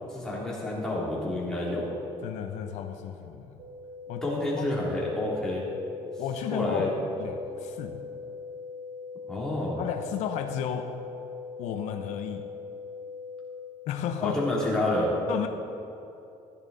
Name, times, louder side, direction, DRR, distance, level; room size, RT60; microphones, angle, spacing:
voice 1, 0.1-1.9 4.2-5.7 6.5-6.9 9.3-9.8 14.2-15.1, left 1 dB, 5° left, -6 dB, 2.8 m, -29 dB
voice 2, 2.2-3.6 4.1-4.2 4.6-4.7 6.2-6.9 7.2-8.0 9.8-10.9 11.6-12.5 13.9-14.4 15.3-15.5, left 8 dB, 80° left, 6 dB, 0.7 m, -33 dB
sound 1, 3.6-13.6, left 5 dB, 35° right, 2.6 m, -41 dB
14.5 x 10.5 x 4.0 m, 2.8 s
cardioid pair, 165°, 12 cm